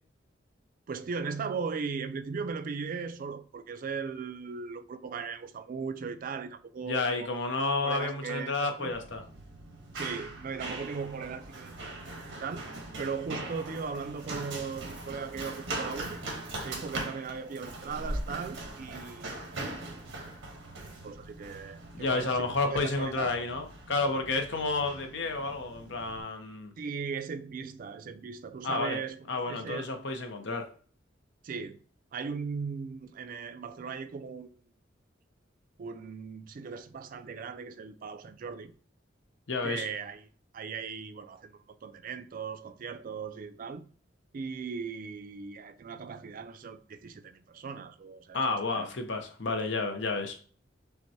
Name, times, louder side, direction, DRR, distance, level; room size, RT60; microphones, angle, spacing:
voice 1, 0.9-7.5 7.8-8.9 9.9-12.6 13.0-16.2 16.6-22.4 22.7-23.3 26.8-30.0 31.4-31.8 32.1-34.5 35.8-38.7 39.6-40.2 40.5-41.5 41.8-43.8 44.3-48.9, right 5 dB, 45° right, 0.3 m, -38 dB
voice 2, 6.8-9.2 21.9-26.7 28.6-29.0 29.3-30.7 39.5-39.9 48.3-50.4, left 3 dB, 65° left, 0.7 m, -31 dB
Run, 8.9-26.2, right 2 dB, 80° right, 1.1 m, -41 dB
5.7 x 2.2 x 2.7 m
head